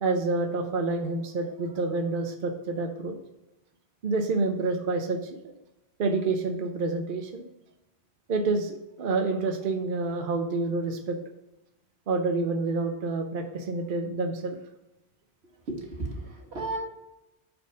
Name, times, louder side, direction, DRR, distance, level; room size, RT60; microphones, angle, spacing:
voice 1, 0.0-3.2 4.0-5.5 6.0-7.5 8.3-11.2 12.1-14.6, right 3 dB, 55° right, 5 dB, 0.8 m, -28 dB
voice 2, 15.7-16.8, right 2 dB, 80° right, 1 dB, 1.9 m, -34 dB
8.7 x 4.4 x 5.2 m, 0.93 s
omnidirectional pair, 1.1 m